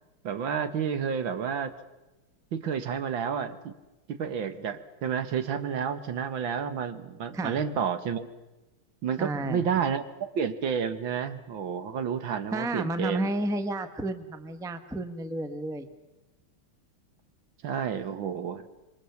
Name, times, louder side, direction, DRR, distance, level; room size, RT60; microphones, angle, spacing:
voice 1, 0.2-1.7 2.5-3.7 4.1-8.3 9.0-10.0 10.4-13.3 17.6-18.6, right 7 dB, 65° right, 10 dB, 1.9 m, -30 dB
voice 2, 9.2-9.6 12.5-15.9, right 1 dB, ahead, 9 dB, 0.9 m, -31 dB
26.5 x 23.5 x 7.1 m, 1.1 s
omnidirectional pair, 2.4 m